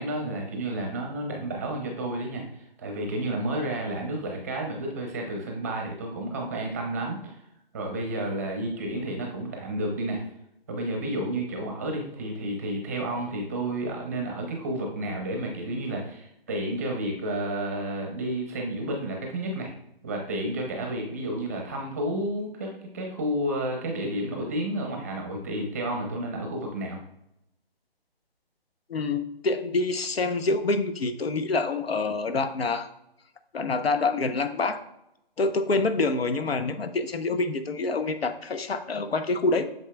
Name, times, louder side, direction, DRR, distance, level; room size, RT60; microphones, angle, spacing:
voice 1, 0.0-7.4 7.7-10.2 10.7-19.7 20.0-22.7 22.9-27.0, right 1 dB, 15° right, 2 dB, 0.7 m, -31 dB
voice 2, 28.9-32.9 33.5-34.8 35.4-39.7, left 3 dB, 80° left, 9 dB, 0.9 m, -26 dB
8.1 x 6.4 x 2.2 m, 0.83 s
hypercardioid pair, 160°, 30 cm